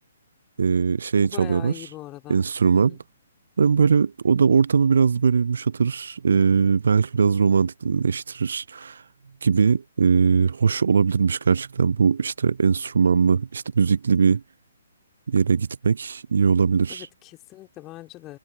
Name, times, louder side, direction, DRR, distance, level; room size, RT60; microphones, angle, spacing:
voice 1, 0.6-1.7 2.3-3.0 3.6-9.0 9.4-14.4 15.3-17.1, right 5 dB, 60° right, 0.4 m, -20 dB
voice 2, 1.2-2.5 2.7-3.0 16.9-18.4, left 17 dB, 20° left, 3.4 m, -41 dB
figure-of-eight pair, 125°, 0 cm